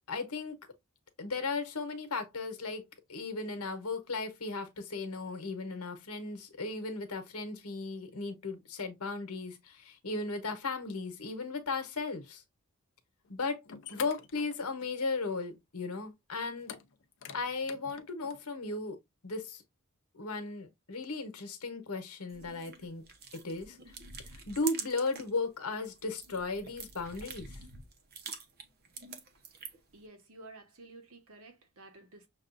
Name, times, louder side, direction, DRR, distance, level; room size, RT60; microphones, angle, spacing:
voice 1, 0.1-0.6 1.2-12.4 13.3-13.6 13.9-16.8 17.3-19.0 19.2-19.6 20.1-23.0 23.4-23.8 24.5-27.6, left 3 dB, 90° left, 1.1 m, -36 dB
sound 1, 13.2-13.3 13.7-15.1 15.4-15.5 16.6-18.4, left 8 dB, 55° left, 0.5 m, -46 dB
sound 2, 22.3-25.4 25.7-29.9, right 5 dB, 45° right, 0.8 m, -45 dB
voice 2, 29.9-32.3, right 2 dB, 70° right, 1.2 m, -53 dB
6.4 x 2.4 x 2.5 m
head